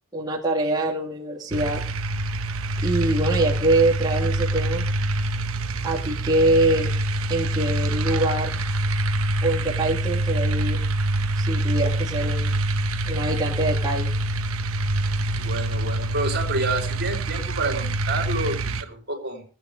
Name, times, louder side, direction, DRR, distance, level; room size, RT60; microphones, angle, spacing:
voice 1, 0.1-1.8 2.8-4.9 5.8-6.9 7.3-8.6 9.4-10.8 11.3-12.6 13.1-14.1, right 2 dB, 20° right, -6 dB, 2.6 m, -24 dB
sound 1, 1.5-18.8, right 1 dB, 75° right, 1.2 m, -25 dB
voice 2, 15.3-19.4, right 2 dB, 50° right, 2 dB, 4.2 m, -29 dB
18.0 x 8.7 x 5.1 m, 0.39 s
head